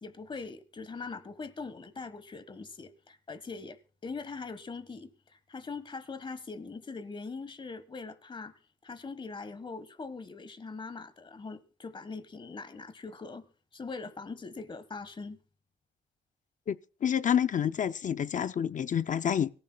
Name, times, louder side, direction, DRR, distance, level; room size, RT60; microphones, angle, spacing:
voice 1, 0.0-8.5 8.8-13.4 13.7-15.4, left 4 dB, 25° left, 1.4 m, -42 dB
voice 2, 17.0-19.5, left 8 dB, 40° left, 0.5 m, -28 dB
24.0 x 15.0 x 2.3 m
cardioid pair, 145°, 19 cm